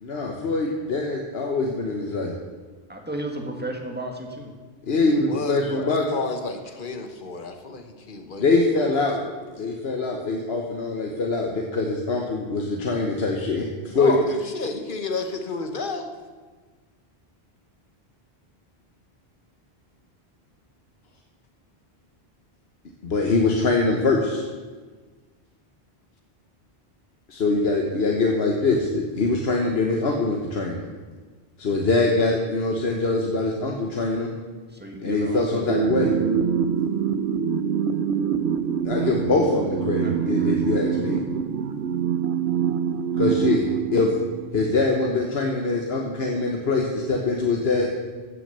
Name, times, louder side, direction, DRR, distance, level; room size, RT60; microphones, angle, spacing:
voice 1, 0.0-2.3 4.9-6.1 8.4-9.2 9.6-14.2 23.0-24.4 27.3-30.8 31.6-34.3 35.0-36.1 38.8-41.2 43.2-43.7 43.9-44.1 44.5-48.0, left 3 dB, 70° left, 1 dB, 1.3 m, -23 dB
voice 2, 2.9-4.5 34.7-35.9 40.0-40.6, right 1 dB, 10° right, 2 dB, 1.6 m, -34 dB
voice 3, 4.9-8.9 9.2-9.7 14.0-16.1, left 4 dB, 55° left, 6 dB, 1.3 m, -32 dB
sound 1, 35.7-44.7, right 8 dB, 75° right, 1.0 m, -25 dB
15.5 x 6.3 x 6.8 m, 1.4 s
omnidirectional pair, 1.1 m